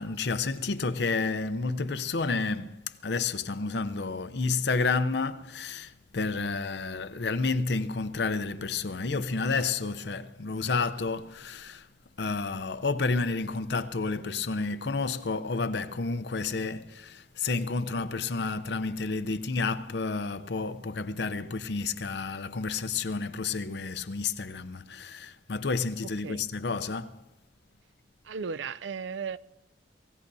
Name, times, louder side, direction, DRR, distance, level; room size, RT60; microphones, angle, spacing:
voice 1, 0.0-2.8 3.0-11.8 12.2-27.1, left 4 dB, 65° left, 0.6 m, -30 dB
voice 2, 28.2-29.4, right 5 dB, 90° right, 0.5 m, -35 dB
27.0 x 16.0 x 2.7 m
head